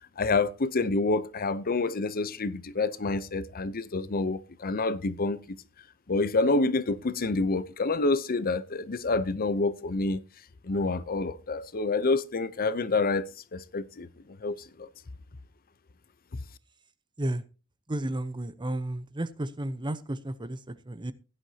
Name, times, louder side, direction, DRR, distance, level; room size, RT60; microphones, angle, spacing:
voice 1, 0.2-5.6 6.1-10.2 10.6-13.3 13.5-14.1 14.4-14.9, left 3 dB, 45° left, 0.7 m, -28 dB
voice 2, 17.9-21.1, right 1 dB, 20° right, 0.8 m, -33 dB
16.5 x 11.0 x 2.8 m
head